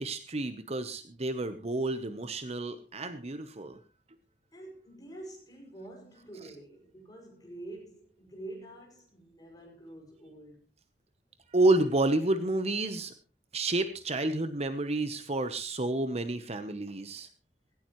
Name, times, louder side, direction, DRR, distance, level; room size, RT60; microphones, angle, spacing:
voice 1, 0.0-3.8 11.5-13.1 13.5-17.3, right 2 dB, 35° right, 1.0 m, -30 dB
voice 2, 4.5-10.6, right 2 dB, 20° left, 6.2 m, -47 dB
17.0 x 16.5 x 3.1 m
head